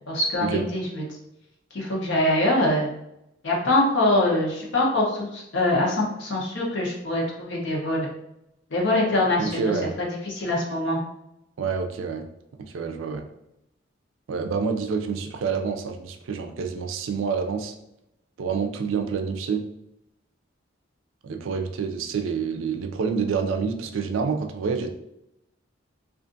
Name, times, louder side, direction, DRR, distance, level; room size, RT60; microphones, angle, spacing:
voice 1, 0.1-1.0 1.7-2.9 3.4-8.1 8.7-11.0, left 1 dB, 65° left, -3 dB, 0.8 m, -24 dB
voice 2, 9.4-10.0 11.6-12.3 12.7-13.2 14.3-17.8 18.4-19.6 21.2-24.9, right 5 dB, 85° right, 6 dB, 0.4 m, -27 dB
2.4 x 2.4 x 2.5 m, 0.83 s
head